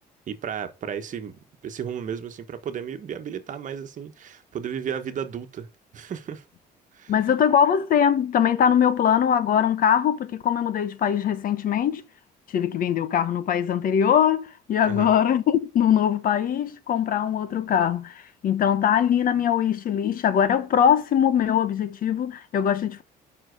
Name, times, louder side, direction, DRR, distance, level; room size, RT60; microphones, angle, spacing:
voice 1, 0.3-1.3 1.6-5.7 5.9-6.4 6.9-7.1 14.8-15.1, right 8 dB, 50° right, 1.3 m, -33 dB
voice 2, 7.1-12.0 12.5-23.0, left 9 dB, 55° left, 1.1 m, -22 dB
7.5 x 5.7 x 6.5 m
cardioid pair, 110°, 17 cm